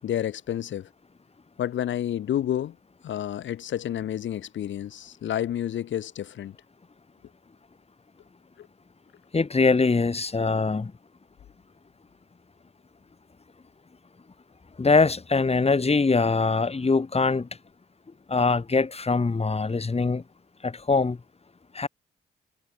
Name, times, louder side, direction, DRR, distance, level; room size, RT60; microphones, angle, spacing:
voice 1, 0.0-0.9 1.6-2.8 3.0-6.6 8.6-8.7, left 11 dB, 75° left, 5.5 m, -30 dB
voice 2, 9.3-10.9 14.8-17.5 18.3-20.2 20.6-21.2 21.7-21.9, left 4 dB, 30° left, 1.9 m, -23 dB
hypercardioid pair, 45°, 19 cm